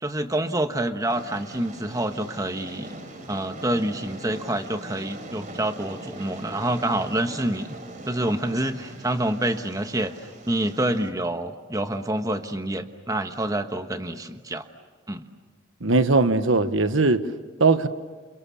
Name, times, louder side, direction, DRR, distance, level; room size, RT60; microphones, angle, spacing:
voice 1, 0.0-2.9 3.3-7.7 8.1-10.1 10.5-14.6 15.1-15.2, right 1 dB, 15° right, 8 dB, 1.2 m, -27 dB
Train, 1.1-11.1, right 1 dB, 40° right, 3.7 m, -41 dB
voice 2, 15.8-17.2 17.6-17.9, right 3 dB, 80° right, 11 dB, 1.2 m, -19 dB
29.0 x 28.0 x 7.2 m, 1.3 s
head